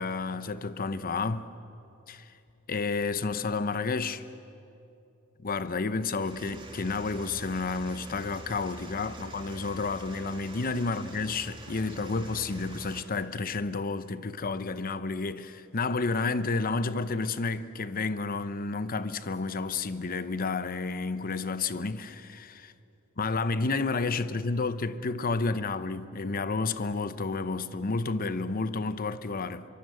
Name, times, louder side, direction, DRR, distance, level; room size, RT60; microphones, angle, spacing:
voice 1, 0.0-1.5 2.1-2.3 2.7-4.2 5.4-22.6 23.2-29.7, left 3 dB, 45° left, 0.8 m, -31 dB
sound 1, 6.2-13.0, right 2 dB, 25° right, 2.5 m, -45 dB
24.0 x 23.5 x 7.8 m
head